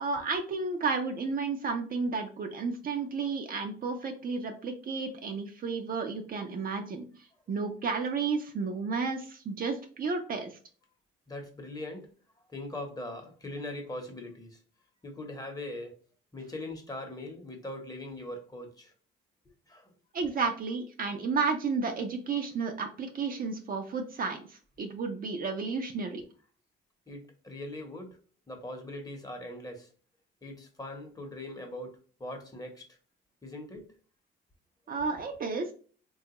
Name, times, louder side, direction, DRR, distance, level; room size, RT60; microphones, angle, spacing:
voice 1, 0.0-7.0 7.5-10.5 20.1-26.2 34.9-35.7, right 4 dB, 45° right, 5 dB, 0.6 m, -32 dB
voice 2, 11.3-12.1 12.5-14.6 15.0-16.0 16.3-18.9 19.7-19.9 27.1-28.2 28.5-29.9 30.4-31.9 32.2-32.8 33.4-33.9, left 1 dB, 20° left, 3 dB, 0.9 m, -41 dB
3.3 x 2.3 x 2.9 m, 0.40 s
cardioid pair, 90°, 20 cm